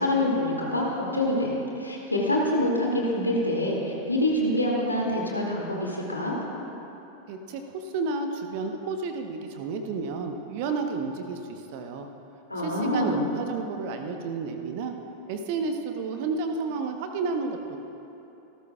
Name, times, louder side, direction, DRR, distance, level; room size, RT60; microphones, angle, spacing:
voice 1, 0.0-1.5 1.8-6.4 12.5-13.2, left 1 dB, 85° left, -2 dB, 2.4 m, -26 dB
voice 2, 7.3-12.1 12.6-14.9 15.3-17.8, right 4 dB, 45° right, 5 dB, 1.0 m, -31 dB
26.0 x 13.5 x 2.4 m, 3.0 s
figure-of-eight pair, 90°, 0 cm